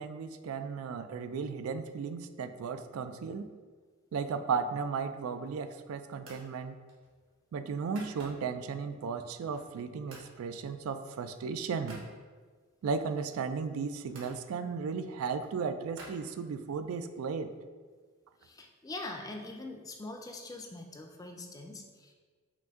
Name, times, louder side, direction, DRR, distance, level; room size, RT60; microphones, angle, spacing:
voice 1, 0.0-3.5 4.1-6.8 7.5-12.1 12.8-17.5, right 5 dB, 90° right, 9 dB, 0.3 m, -35 dB
sound 1, 5.3-5.8 6.2-6.5 6.9-8.7 9.1-9.8 10.1-10.3 10.7-12.1 12.9-14.4 14.9-16.8, right 2 dB, 70° right, 1.2 m, -53 dB
voice 2, 18.4-22.1, left 2 dB, 15° left, 3 dB, 0.4 m, -43 dB
5.7 x 2.6 x 3.5 m, 1.5 s
head